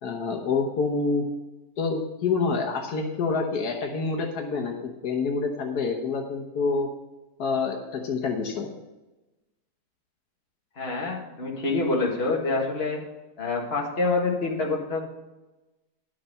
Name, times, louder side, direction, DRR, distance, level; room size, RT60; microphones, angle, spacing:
voice 1, 0.0-1.2 1.8-6.9 7.4-8.7, left 4 dB, 80° left, 2 dB, 1.6 m, -27 dB
voice 2, 10.8-13.0 13.4-15.0, left 3 dB, 40° left, -1 dB, 2.0 m, -26 dB
11.5 x 6.7 x 5.5 m, 1.1 s
omnidirectional pair, 1.7 m